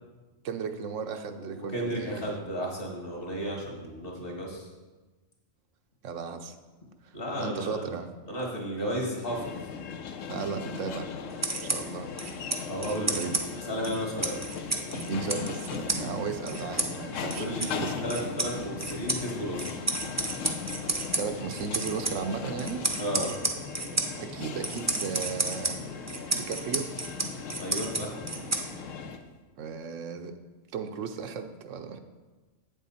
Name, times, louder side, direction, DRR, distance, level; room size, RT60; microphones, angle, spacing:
voice 1, 0.4-2.2 6.0-6.5 7.0-8.1 10.3-11.1 11.6-12.1 13.2-13.4 13.9-14.0 14.9-17.9 21.2-22.8 24.2-25.8 26.3-26.9 29.6-30.3 30.7-32.0, right 6 dB, 80° right, 7 dB, 1.0 m, -35 dB
voice 2, 1.4-4.7 7.1-7.8 8.3-9.6 12.7-13.2 13.7-14.4 17.3-19.7 23.0-23.3 27.6-28.1, equal, 45° left, -2 dB, 2.1 m, -33 dB
sound 1, 9.3-29.2, left 6 dB, 80° left, 1.0 m, -38 dB
sound 2, 11.3-29.1, right 2 dB, 20° right, 0.5 m, -33 dB
8.1 x 7.3 x 4.2 m, 1.2 s
omnidirectional pair, 1.3 m